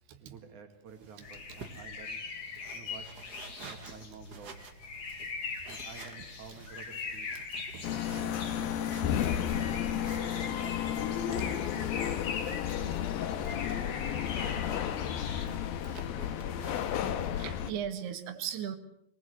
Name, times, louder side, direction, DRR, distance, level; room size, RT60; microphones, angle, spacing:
voice 1, 0.2-2.3 2.7-3.1 3.6-4.6 5.7-7.3 8.2-9.6 10.2-13.1 13.7-15.0 16.1-16.8, right 5 dB, 55° right, 6 dB, 3.7 m, -50 dB
sound 1, 0.9-17.4, right 4 dB, 40° right, 1.6 m, -54 dB
sound 2, 1.2-15.5, left 5 dB, 50° left, 3.2 m, -42 dB
sound 3, 7.8-17.7, left 10 dB, 75° left, 2.9 m, -32 dB
voice 2, 17.3-18.8, right 9 dB, 85° right, 8 dB, 3.7 m, -37 dB
23.5 x 19.5 x 8.0 m, 0.74 s
omnidirectional pair, 4.5 m